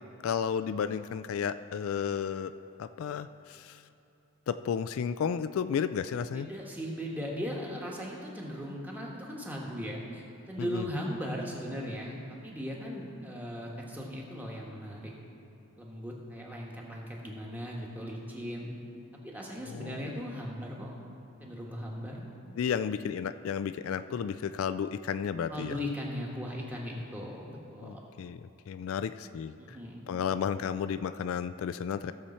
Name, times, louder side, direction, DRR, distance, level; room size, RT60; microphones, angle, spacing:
voice 1, 0.2-2.5 2.8-3.8 4.5-6.5 10.6-10.9 19.7-20.1 22.5-25.7 27.8-28.4 28.7-29.8 30.1-32.1, left 7 dB, 70° left, 12 dB, 0.3 m, -32 dB
voice 2, 6.3-15.1 15.8-18.7 19.2-20.9 21.4-22.3 25.5-28.0 29.6-30.1, equal, 10° right, -3 dB, 1.3 m, -38 dB
15.5 x 6.9 x 4.3 m, 2.9 s
head